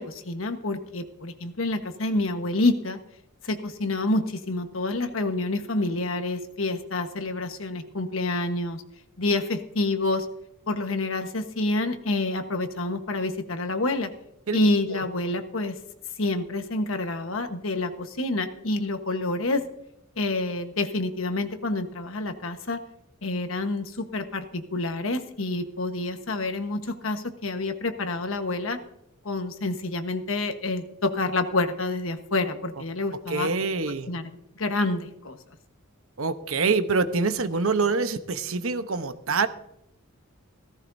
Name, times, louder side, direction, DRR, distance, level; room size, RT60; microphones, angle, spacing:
voice 1, 0.0-3.0 3.4-8.8 9.2-10.3 10.7-14.1 14.5-15.7 16.2-19.6 20.2-22.8 23.2-28.8 29.2-33.5 34.1-35.4, left 2 dB, 70° left, 7 dB, 1.3 m, -28 dB
voice 2, 33.3-34.1 36.2-39.5, right 4 dB, 80° right, 10 dB, 1.0 m, -25 dB
16.5 x 15.0 x 2.7 m, 0.78 s
head